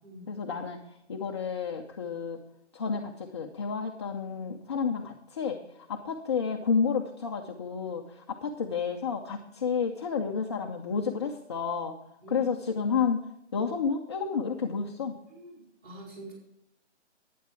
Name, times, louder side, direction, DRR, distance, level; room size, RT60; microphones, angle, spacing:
voice 1, 0.3-0.8 1.1-2.4 2.7-5.6 5.9-12.0 12.3-13.2 13.5-15.2, left 6 dB, 25° left, 1 dB, 0.7 m, -30 dB
voice 2, 15.3-16.3, right 1 dB, 20° right, -3 dB, 4.7 m, -45 dB
11.5 x 9.4 x 4.5 m, 0.80 s
hypercardioid pair, 160°, 36 cm